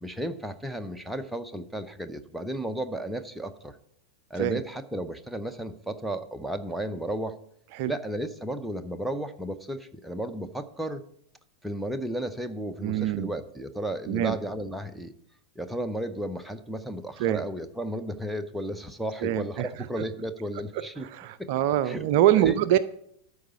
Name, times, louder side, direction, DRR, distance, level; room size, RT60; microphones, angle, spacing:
voice 1, 0.0-3.8 4.3-7.4 7.9-11.0 11.6-15.1 15.6-21.1 21.4-21.5 21.8-22.1 22.3-22.6, right 1 dB, 5° right, 7 dB, 0.7 m, -33 dB
voice 2, 12.8-13.3 14.1-14.4 17.2-17.4 19.2-19.7 21.1-22.8, right 12 dB, 45° right, 14 dB, 0.4 m, -24 dB
12.5 x 4.7 x 6.7 m, 0.70 s
figure-of-eight pair, 90°, 0 cm